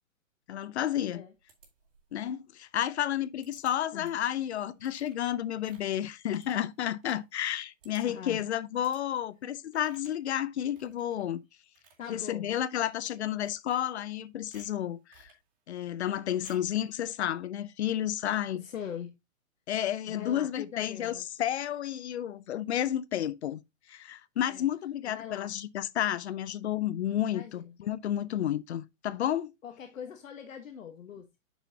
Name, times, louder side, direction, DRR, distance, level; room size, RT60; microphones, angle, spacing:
voice 1, 0.5-1.2 2.1-11.4 12.1-15.3 15.7-18.6 19.7-23.6 23.9-29.5, left 11 dB, 55° left, 0.7 m, -31 dB
sound 1, 1.5-2.2 3.4-3.7 4.0-4.3 4.8-7.2 7.5-7.6 7.8-8.3 8.8-9.0 9.7-10.3 10.7-11.2 11.6-12.1 12.9-13.2 13.5-14.2 14.5-15.4 16.4-16.8, right 5 dB, 40° right, 3.5 m, -60 dB
voice 2, 8.0-8.5 12.0-12.5 18.5-19.1 20.1-21.3 24.5-24.7 25.0-25.5 27.3-27.8 29.6-31.4, left 8 dB, 70° left, 1.4 m, -42 dB
8.9 x 6.3 x 2.7 m
hypercardioid pair, 165°, 41 cm